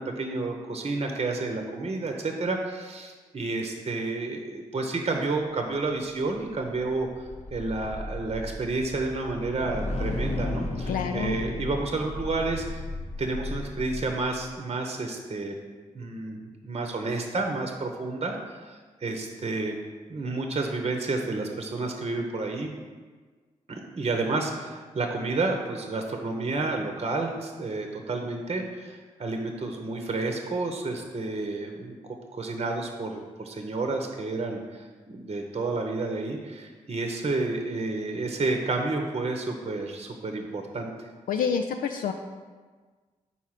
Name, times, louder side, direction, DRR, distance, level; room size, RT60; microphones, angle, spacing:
voice 1, 0.0-7.1 7.5-12.8 13.2-15.5 15.9-19.8 20.1-22.7 23.7-32.0 32.3-40.9, right 3 dB, 40° right, 3 dB, 0.8 m, -30 dB
sound 1, 6.1-14.5, left 2 dB, 50° left, 0.8 m, -34 dB
voice 2, 10.9-11.4 41.3-42.1, left 6 dB, 70° left, 4 dB, 0.4 m, -27 dB
4.8 x 4.1 x 5.8 m, 1.4 s
supercardioid pair, 40°, 15 cm